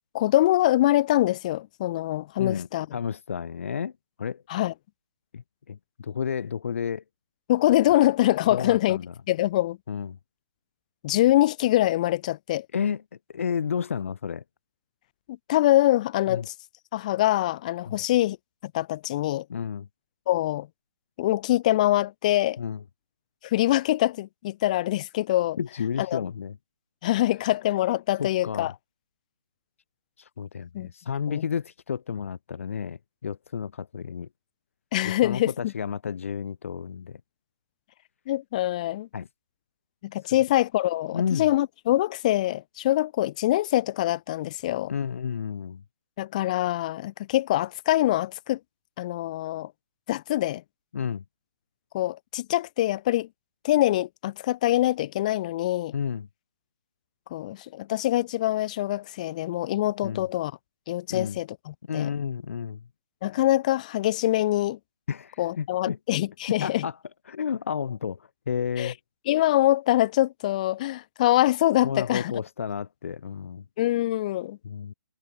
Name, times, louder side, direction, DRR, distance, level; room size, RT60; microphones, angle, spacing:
voice 1, 0.1-2.9 4.5-4.7 7.5-9.0 9.3-9.8 11.0-12.7 15.3-16.5 16.9-18.4 18.7-19.4 20.3-20.7 21.2-22.6 23.4-25.6 26.0-26.2 27.0-28.7 30.7-30.9 31.3-31.4 34.9-35.5 38.3-39.1 40.0-44.9 46.2-48.6 49.0-49.7 50.1-50.6 51.9-53.3 53.6-55.9 57.3-60.5 60.9-62.1 63.2-64.8 65.4-66.8 68.8-68.9 69.3-72.3 73.8-74.6, left 15 dB, 25° left, 4.4 m, -24 dB
voice 2, 2.4-3.9 4.2-4.4 5.3-7.0 8.5-9.1 9.9-10.2 12.7-13.0 13.3-14.4 16.3-16.5 17.8-18.0 19.5-19.9 22.6-22.8 25.6-26.6 28.2-28.7 30.2-34.3 35.0-37.2 39.1-39.3 41.1-41.5 44.9-45.8 50.9-51.2 55.9-56.3 60.0-60.3 61.1-61.4 61.9-62.8 65.1-66.0 66.6-67.0 67.3-69.0 71.8-73.6 74.6-74.9, left 7 dB, 50° left, 3.0 m, -31 dB
hypercardioid pair, 175°, 9 cm